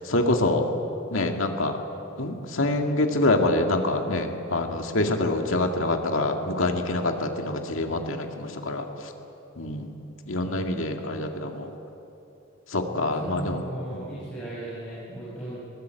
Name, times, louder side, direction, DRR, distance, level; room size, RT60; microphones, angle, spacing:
voice 1, 0.1-0.6 1.1-1.8 2.2-8.8 9.6-9.9 10.3-11.7 12.7-13.6, left 2 dB, 75° left, 4 dB, 2.0 m, -25 dB
voice 2, 10.4-10.8 12.9-15.5, right 1 dB, 5° left, -10 dB, 5.9 m, -37 dB
21.5 x 18.5 x 8.2 m, 2.9 s
head